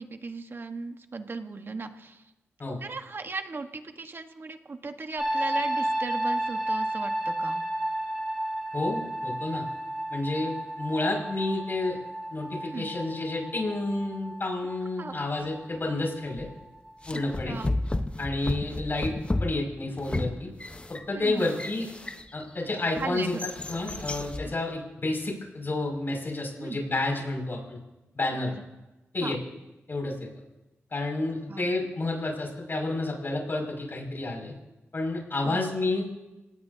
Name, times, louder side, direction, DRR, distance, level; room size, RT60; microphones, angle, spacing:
voice 1, 0.0-2.3 2.8-7.6 12.6-12.9 15.0-15.1 16.4-16.5 17.1-17.7 21.1-21.5 23.0-23.4 24.0-24.1 24.4-24.5 26.6-26.8 28.5-28.6 29.2-29.4 31.5-31.7 35.4-35.9, right 4 dB, 50° right, 7 dB, 1.4 m, -37 dB
sound 1, 5.2-16.9 17.2-17.6, right 1 dB, 5° right, 6.8 m, -32 dB
voice 2, 8.7-9.6 10.1-11.9 12.3-16.5 17.1-17.6 18.2-19.1 19.4-20.5 20.9-21.9 22.3-27.8 28.1-28.5 29.1-29.4 29.9-30.1 30.9-34.5 34.9-36.0, left 2 dB, 50° left, 0 dB, 6.3 m, -30 dB
sound 2, 16.4-16.6 17.0-22.5 23.0-24.5, left 2 dB, 25° left, 1.1 m, -33 dB
28.5 x 18.0 x 2.8 m, 1.0 s
cardioid pair, 65°, 5 cm